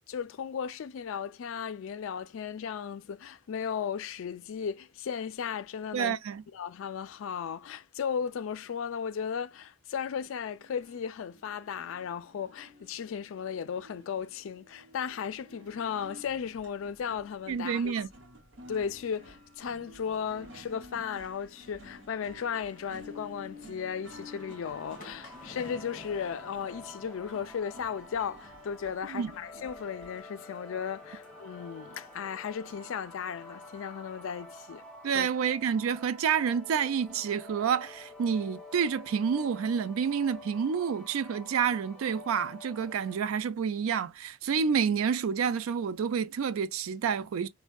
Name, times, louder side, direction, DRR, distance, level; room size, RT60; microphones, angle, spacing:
voice 1, 0.1-6.2 6.5-18.0 18.7-35.3, left 7 dB, 70° left, 0.3 m, -36 dB
voice 2, 5.9-6.4 17.5-18.1 29.1-29.3 35.0-47.5, right 7 dB, 85° right, 0.4 m, -29 dB
sound 1, 10.6-30.2, left 1 dB, 60° right, 0.9 m, -52 dB
sound 2, 20.3-33.8, left 2 dB, 40° left, 1.1 m, -56 dB
sound 3, 24.0-43.2, left 2 dB, 5° left, 0.5 m, -49 dB
4.3 x 2.1 x 2.2 m
head